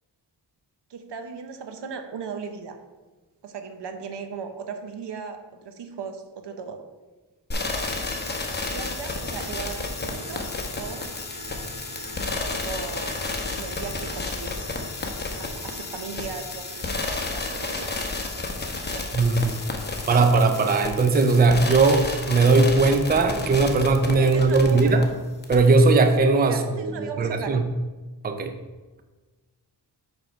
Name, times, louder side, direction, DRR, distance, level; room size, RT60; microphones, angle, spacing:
voice 1, 0.9-2.8 3.4-6.8 8.7-10.5 10.8-11.1 12.5-13.1 13.6-14.7 15.4-18.0 18.9-19.2 24.2-25.0 26.5-27.6, right 6 dB, 75° right, 7 dB, 0.8 m, -37 dB
sound 1, 7.5-25.0 25.4-25.6, left 3 dB, 25° left, 0.8 m, -31 dB
voice 2, 19.1-19.6 20.1-25.0 25.5-27.6 28.2-28.6, right 3 dB, 25° right, 7 dB, 0.5 m, -19 dB
5.2 x 4.4 x 5.8 m, 1.3 s
wide cardioid pair, 130°, 42 cm